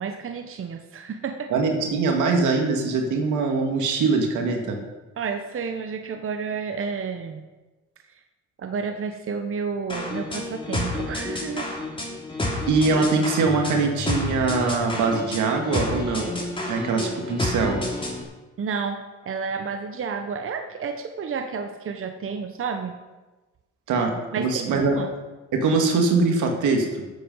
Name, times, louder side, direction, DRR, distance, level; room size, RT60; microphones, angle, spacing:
voice 1, 0.0-1.5 5.2-7.4 8.1-8.2 8.6-11.7 18.6-22.9 24.3-25.1, right 5 dB, 45° right, 6 dB, 1.0 m, -31 dB
voice 2, 1.5-4.8 12.7-16.3 16.7-17.8 23.9-25.0 25.5-26.9, right 4 dB, 80° right, 3 dB, 2.1 m, -22 dB
sound 1, 9.9-18.2, left 2 dB, 15° left, 3.2 m, -30 dB
13.5 x 8.0 x 5.5 m, 1.2 s
cardioid pair, 90°, 30 cm